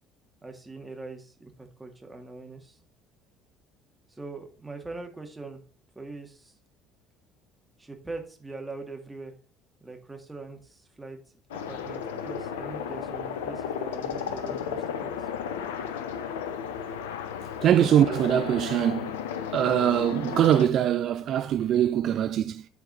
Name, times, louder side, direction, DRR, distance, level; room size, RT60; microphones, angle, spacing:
voice 1, 0.4-2.8 4.1-5.6 6.0-6.6 7.8-9.3 9.8-11.2 11.5-15.1, right 3 dB, 15° right, 2.1 m, -42 dB
sound 1, 11.5-20.7, left 7 dB, 70° left, 0.7 m, -34 dB
voice 2, 17.6-19.2 19.5-22.7, right 10 dB, 50° right, 0.5 m, -23 dB
11.5 x 4.6 x 4.1 m
figure-of-eight pair, 55°, 0 cm